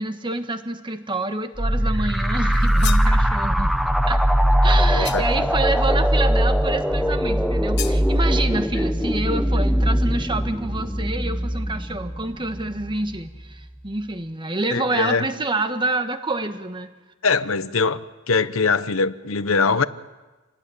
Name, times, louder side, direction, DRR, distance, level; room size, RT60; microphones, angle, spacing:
voice 1, 0.0-3.7 4.1-4.2 4.6-16.9, right 2 dB, 25° right, 1.6 m, -27 dB
sound 1, 1.6-12.9, equal, ahead, 0.8 m, -20 dB
sound 2, 2.5-3.1 5.0-5.5 7.8-8.0, left 11 dB, 55° left, 1.6 m, -33 dB
voice 2, 4.9-5.3 14.7-15.3 17.2-18.0 18.3-19.8, left 4 dB, 85° left, 1.1 m, -22 dB
27.5 x 18.5 x 10.0 m
head